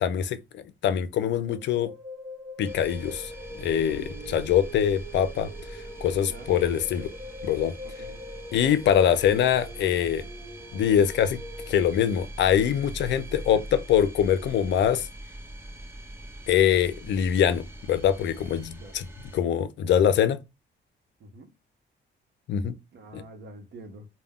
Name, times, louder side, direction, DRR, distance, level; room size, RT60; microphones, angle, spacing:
voice 1, 0.0-1.9 2.6-3.3 3.6-5.5 6.0-7.1 7.4-7.7 8.5-10.2 10.7-11.4 11.7-15.1 16.5-19.1 19.3-20.4 22.5-22.7 23.1-23.2, left 9 dB, 65° left, 0.4 m, -23 dB
sound 1, 1.4-11.7, left 1 dB, 40° right, 1.1 m, -43 dB
sound 2, 2.6-19.4, right 1 dB, 10° right, 0.7 m, -42 dB
voice 2, 3.9-4.5 6.2-6.5 7.8-8.2 13.3-13.6 18.7-19.0 21.2-21.5 22.9-24.1, right 2 dB, 60° right, 0.7 m, -46 dB
2.1 x 2.1 x 3.4 m
cardioid pair, 90°, 20 cm